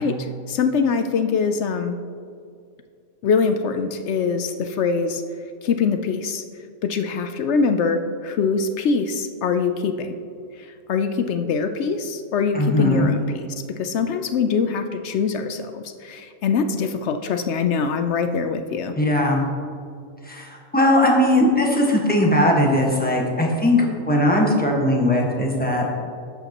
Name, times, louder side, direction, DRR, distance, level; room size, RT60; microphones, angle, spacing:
voice 1, 0.0-2.0 3.2-5.2 5.6-6.4 6.8-10.1 10.6-13.5 13.8-19.0, left 5 dB, 65° left, 8 dB, 0.8 m, -23 dB
voice 2, 12.5-13.1 19.0-19.4 20.2-25.9, left 1 dB, 5° left, -2 dB, 1.4 m, -19 dB
12.0 x 8.2 x 3.0 m, 2.3 s
omnidirectional pair, 1.3 m